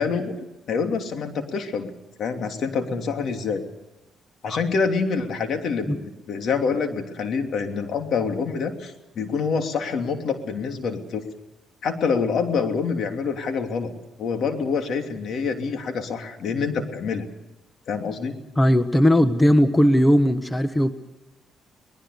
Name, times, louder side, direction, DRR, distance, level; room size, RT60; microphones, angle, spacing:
voice 1, 0.0-1.9 2.2-3.6 4.4-11.2 11.8-13.9 14.2-17.3 17.9-18.4, left 5 dB, 65° left, 5 dB, 3.1 m, -26 dB
voice 2, 18.6-20.9, equal, 15° left, 10 dB, 1.3 m, -18 dB
23.5 x 20.5 x 6.9 m, 0.97 s
cardioid pair, 90°, 0 cm